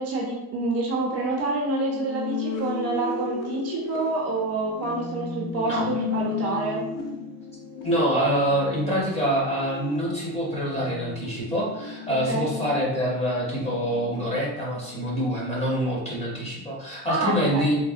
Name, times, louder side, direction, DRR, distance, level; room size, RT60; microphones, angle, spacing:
voice 1, 0.0-6.8 12.3-12.4 17.1-17.7, right 3 dB, 40° right, -2 dB, 0.5 m, -27 dB
sound 1, 1.9-15.6, left 6 dB, 55° left, 0.5 m, -35 dB
voice 2, 7.8-17.8, equal, 15° left, -5 dB, 0.8 m, -25 dB
3.4 x 2.0 x 2.4 m, 0.87 s
cardioid pair, 150°, 38 cm